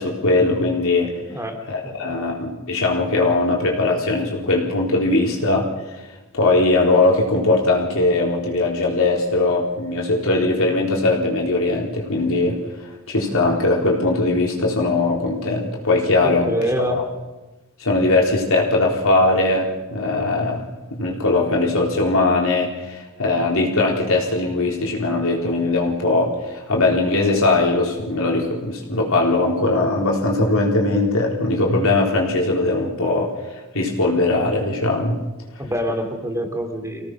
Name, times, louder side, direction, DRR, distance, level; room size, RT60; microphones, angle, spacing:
voice 1, 0.0-1.1 1.7-5.7 6.3-12.6 13.1-16.5 16.8-17.0 17.8-20.6 20.9-35.2, left 2 dB, 65° left, -1 dB, 3.8 m, -20 dB
voice 2, 1.3-1.6 1.8-2.3 16.2-17.0 35.6-37.1, equal, 15° right, 5 dB, 2.9 m, -26 dB
25.5 x 17.5 x 6.1 m, 1.1 s
head